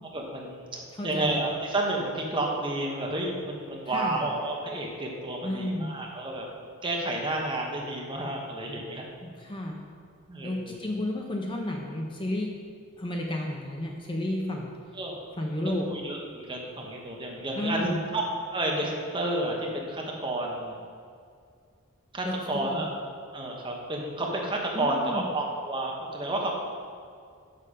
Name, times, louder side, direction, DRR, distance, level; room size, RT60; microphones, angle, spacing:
voice 1, 0.1-6.5 6.8-9.1 10.3-10.8 14.9-15.3 15.8-18.2 18.5-20.8 22.1-22.9 23.3-26.5, right 1 dB, 20° right, -1 dB, 1.0 m, -31 dB
voice 2, 1.0-1.4 3.9-4.2 5.4-5.9 9.2-9.8 10.4-12.5 13.0-14.7 15.4-15.8 17.6-18.0 22.2-22.9 24.7-25.2, left 1 dB, 25° left, 0 dB, 0.6 m, -32 dB
7.0 x 6.6 x 5.0 m, 2.2 s
head